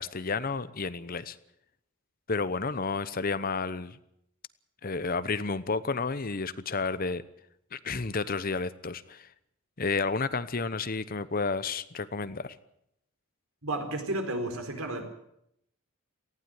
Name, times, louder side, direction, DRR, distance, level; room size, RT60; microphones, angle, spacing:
voice 1, 0.0-1.4 2.3-4.0 4.8-7.2 7.7-9.3 9.8-12.6, left 4 dB, 45° left, 15 dB, 0.9 m, -31 dB
voice 2, 13.6-15.1, right 1 dB, 85° right, 5 dB, 4.4 m, -32 dB
19.0 x 15.5 x 9.5 m, 0.76 s
head